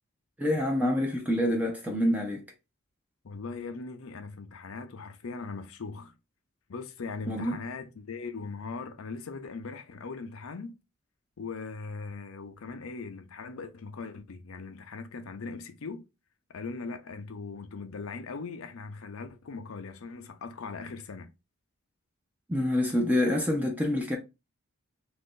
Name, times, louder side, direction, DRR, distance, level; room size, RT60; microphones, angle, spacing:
voice 1, 0.4-2.4 7.3-7.6 22.5-24.2, left 1 dB, 10° right, 0.5 m, -27 dB
voice 2, 3.2-6.1 6.7-10.8 11.4-16.0 16.5-21.3, left 4 dB, 85° left, 0.6 m, -40 dB
3.0 x 2.6 x 3.7 m
head